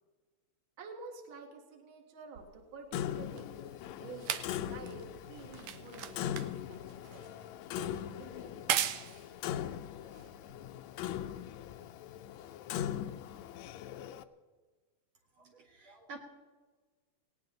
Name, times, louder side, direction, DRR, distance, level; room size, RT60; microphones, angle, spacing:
voice 1, 0.8-4.3 4.6-7.3 7.7-8.6, right 4 dB, 45° right, 3 dB, 2.5 m, -50 dB
sound 1, 2.4-11.0 11.8-11.9, right 11 dB, 80° right, 2.1 m, -40 dB
Clock, 2.9-14.2, left 11 dB, 80° left, 2.0 m, -40 dB
voice 2, 15.3-16.2, right 3 dB, 60° right, 1 dB, 2.8 m, -50 dB
19.5 x 18.0 x 4.0 m, 1.4 s
omnidirectional pair, 3.3 m